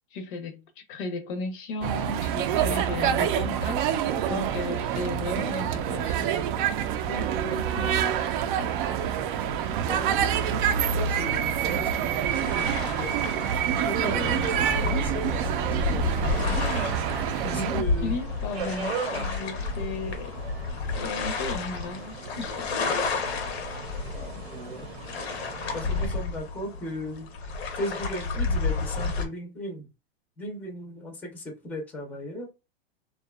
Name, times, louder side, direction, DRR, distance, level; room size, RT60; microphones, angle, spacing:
voice 1, 0.1-6.4 7.1-8.0 14.0-14.5 15.7-16.1 17.1-20.3 21.0-23.1, left 3 dB, 55° left, 0.6 m, -36 dB
sound 1, 1.8-17.8, right 9 dB, 55° right, 0.5 m, -27 dB
voice 2, 9.9-13.2 13.8-16.6 17.4-18.1 24.1-24.9 25.7-27.3 27.7-29.9 30.4-32.5, equal, 5° left, 0.5 m, -37 dB
sound 2, 12.3-29.3, left 4 dB, 85° left, 0.8 m, -31 dB
Subway metro underground, 14.4-26.1, right 6 dB, 90° right, 0.8 m, -40 dB
2.6 x 2.3 x 2.2 m
supercardioid pair, 140°, 30 cm